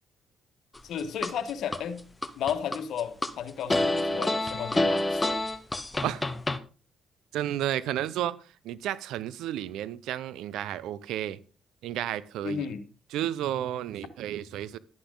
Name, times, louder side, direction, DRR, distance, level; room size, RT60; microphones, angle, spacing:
voice 1, 0.8-2.0 2.4-5.2 12.4-12.8, left 8 dB, 75° left, 9 dB, 1.5 m, -33 dB
sound 1, 0.8-1.8 2.2-3.3 3.7-6.6, left 1 dB, 15° left, 1.0 m, -27 dB
voice 2, 7.3-8.4 8.6-11.4 11.8-12.7 13.1-14.8, right 12 dB, 90° right, 19 dB, 0.7 m, -32 dB
11.5 x 10.5 x 3.8 m, 0.35 s
cardioid pair, 90°, 0 cm